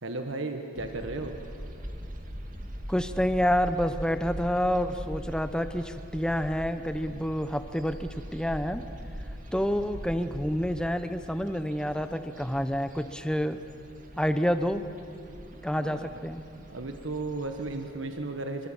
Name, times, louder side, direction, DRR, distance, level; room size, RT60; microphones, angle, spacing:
voice 1, 0.0-1.3 15.7-16.0 16.7-18.7, right 2 dB, 90° right, 5 dB, 1.4 m, -34 dB
sound 1, 0.8-17.9, equal, 45° right, 2.3 m, -42 dB
voice 2, 2.9-8.8 9.5-13.6 14.2-14.8 15.6-16.4, equal, 5° left, 10 dB, 0.9 m, -28 dB
26.5 x 24.5 x 7.3 m, 2.6 s
head